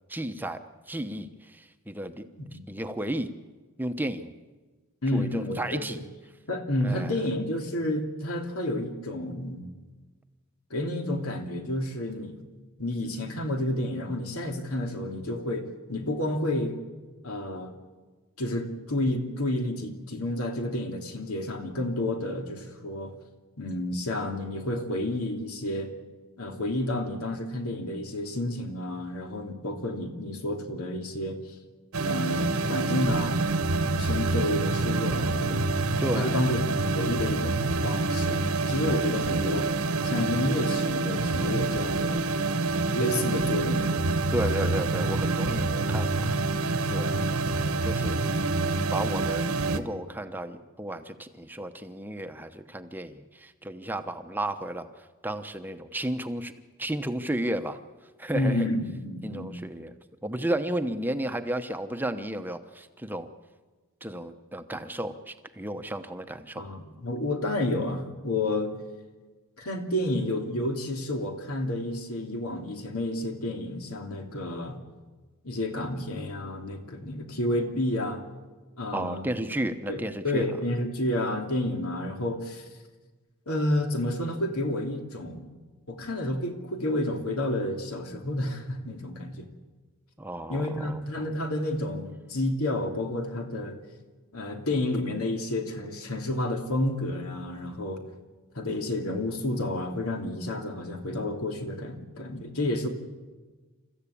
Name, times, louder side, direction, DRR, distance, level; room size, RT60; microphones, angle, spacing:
voice 1, 0.1-0.6 0.9-2.2 2.7-3.3 3.8-4.3 5.1-6.0 6.8-7.1 36.0-36.4 44.3-46.3 46.9-47.3 47.8-48.4 48.9-54.9 55.2-56.5 56.8-57.8 58.2-58.7 59.2-59.9 60.2-63.3 64.0-66.7 78.9-80.5 90.2-91.0, right 1 dB, 10° right, 8 dB, 0.8 m, -33 dB
voice 2, 5.0-6.0 6.5-9.7 10.7-12.4 12.8-16.8 17.2-17.7 18.4-23.1 23.6-25.9 26.4-31.4 32.0-33.4 33.6-35.6 36.1-36.6 36.9-39.7 40.0-42.2 42.9-44.0 44.3-44.7 47.8-47.9 58.3-59.6 66.6-68.7 69.6-74.8 75.4-78.2 78.8-79.3 79.9-82.7 83.5-85.5 85.9-89.5 90.5-93.8 94.3-98.0 98.5-102.9, left 1 dB, 85° left, 4 dB, 3.0 m, -30 dB
sound 1, 31.9-49.8, right 3 dB, 85° right, 1.4 m, -27 dB
29.0 x 14.5 x 8.5 m, 1.3 s
head